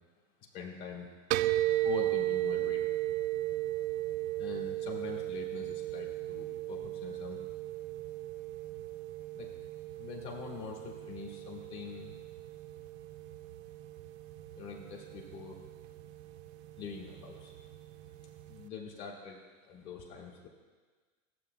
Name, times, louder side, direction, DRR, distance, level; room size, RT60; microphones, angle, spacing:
voice 1, 0.5-1.1 1.8-2.8 4.4-7.4 9.3-9.5 10.0-12.1 14.5-15.6 16.8-17.5 18.5-20.5, left 6 dB, 55° left, -1 dB, 2.3 m, -43 dB
sound 1, 1.3-18.7, right 15 dB, 55° right, 0.5 m, -36 dB
15.0 x 8.0 x 2.3 m, 1.4 s
hypercardioid pair, 115°, 40 cm